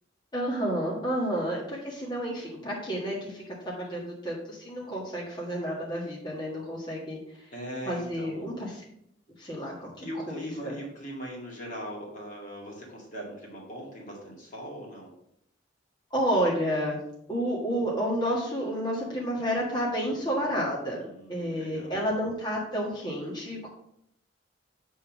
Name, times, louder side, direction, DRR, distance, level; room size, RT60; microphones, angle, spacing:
voice 1, 0.3-7.2 7.8-8.8 9.4-10.8 16.1-17.0 17.3-21.0 21.3-23.7, equal, 25° left, -4 dB, 1.6 m, -30 dB
voice 2, 7.5-8.4 10.0-15.1 21.0-22.0, equal, 40° left, -3 dB, 2.1 m, -40 dB
8.1 x 3.7 x 6.0 m, 0.74 s
head